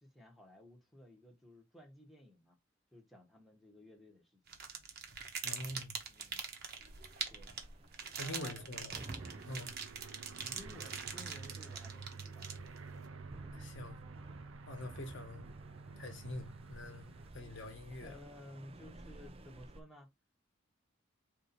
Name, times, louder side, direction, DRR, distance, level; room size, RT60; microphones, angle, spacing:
voice 1, 0.0-2.6 2.9-4.4 6.1-6.4 7.3-7.5 8.2-8.7 10.4-13.0 18.0-20.1, left 1 dB, ahead, 1.1 m, -56 dB
sound 1, 4.5-13.0, right 6 dB, 55° right, 1.0 m, -43 dB
voice 2, 5.4-6.0 8.1-9.0 9.5-9.7 13.5-14.0 14.6-15.5 16.0-17.1 17.3-18.2, left 1 dB, 65° left, 1.2 m, -45 dB
sound 2, 6.8-19.8, right 2 dB, 30° right, 0.5 m, -54 dB
Aircraft, 9.2-17.3, right 4 dB, 85° right, 0.6 m, -50 dB
4.6 x 2.8 x 4.1 m
head